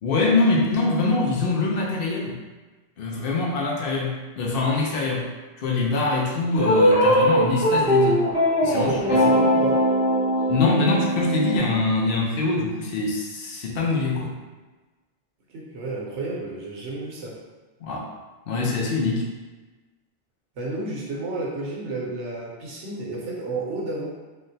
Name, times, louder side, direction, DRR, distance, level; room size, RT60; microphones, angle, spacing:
voice 1, 0.0-2.4 3.0-5.3 5.6-8.3 8.6-9.2 10.5-14.3 17.8-18.1 18.5-19.4, left 3 dB, 60° left, -2 dB, 0.8 m, -24 dB
sound 1, 6.6-11.6, equal, 10° right, 0.4 m, -20 dB
voice 2, 8.7-9.8 15.5-17.4 20.6-24.1, right 2 dB, 85° right, -4 dB, 1.0 m, -31 dB
3.5 x 2.4 x 2.7 m, 1.2 s
omnidirectional pair, 1.2 m